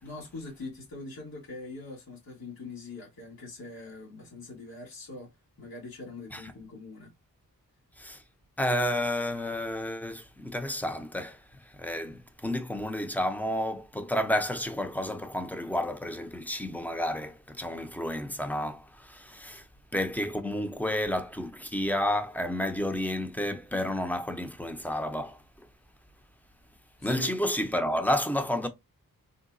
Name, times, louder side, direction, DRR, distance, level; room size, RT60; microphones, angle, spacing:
voice 1, 0.0-7.1 27.0-27.3, left 3 dB, 85° left, 1.6 m, -43 dB
voice 2, 8.6-19.7 19.9-25.7 27.0-28.7, left 1 dB, 5° left, 0.5 m, -31 dB
3.8 x 2.2 x 2.5 m
wide cardioid pair, 85°, 34 cm